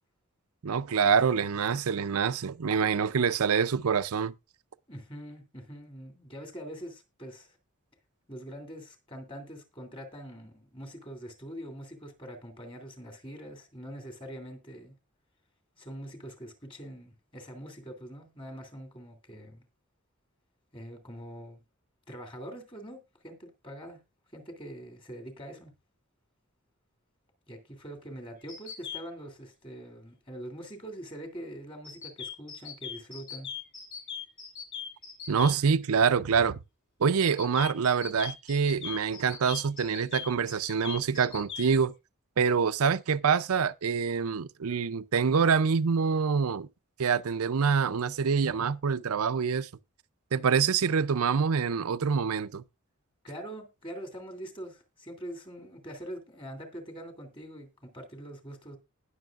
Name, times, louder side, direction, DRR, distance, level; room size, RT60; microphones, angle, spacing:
voice 1, 0.6-4.3 35.3-36.6 37.0-41.9 42.4-46.7 47.0-49.7 50.3-52.6, right 6 dB, 90° right, 0.5 m, -26 dB
voice 2, 4.9-7.6 8.3-14.9 15.8-19.6 20.7-21.6 22.1-24.0 24.3-25.7 27.5-33.5 53.2-58.8, right 1 dB, 25° left, 2.7 m, -44 dB
sound 1, 28.5-29.0 31.8-35.5 37.2-41.7, left 7 dB, 55° left, 4.8 m, -40 dB
19.5 x 6.6 x 2.5 m
head